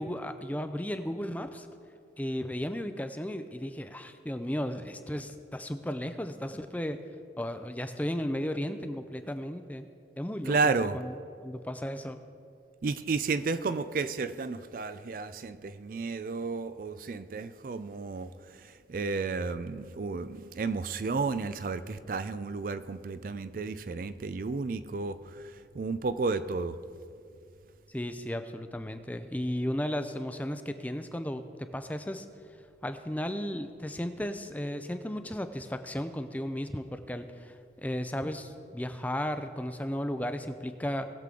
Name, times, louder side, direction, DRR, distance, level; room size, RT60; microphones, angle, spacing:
voice 1, 0.0-1.7 2.2-7.0 7.4-9.8 10.2-11.2 11.4-12.2 27.9-32.3 32.8-41.1, equal, 10° left, 9 dB, 0.4 m, -35 dB
voice 2, 10.5-11.0 12.8-18.3 18.9-25.4 25.7-26.8, right 4 dB, 50° right, 12 dB, 0.4 m, -32 dB
19.5 x 7.5 x 3.8 m, 2.4 s
head